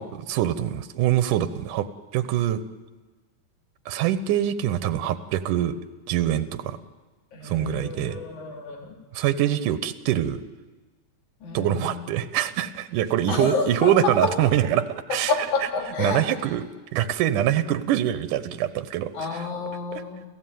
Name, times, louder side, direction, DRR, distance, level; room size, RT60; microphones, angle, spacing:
voice 1, 0.0-1.9 2.1-2.6 3.9-5.8 6.1-6.8 7.4-8.2 9.1-10.4 11.5-15.3 16.0-16.6 16.9-19.4 19.9-20.0, right 11 dB, 90° right, 14 dB, 2.6 m, -24 dB
voice 2, 7.3-8.9 11.4-12.1 13.3-14.3 15.1-16.3 19.1-20.2, left 4 dB, 70° left, 3 dB, 4.6 m, -29 dB
29.5 x 15.0 x 9.2 m, 1.3 s
omnidirectional pair, 3.6 m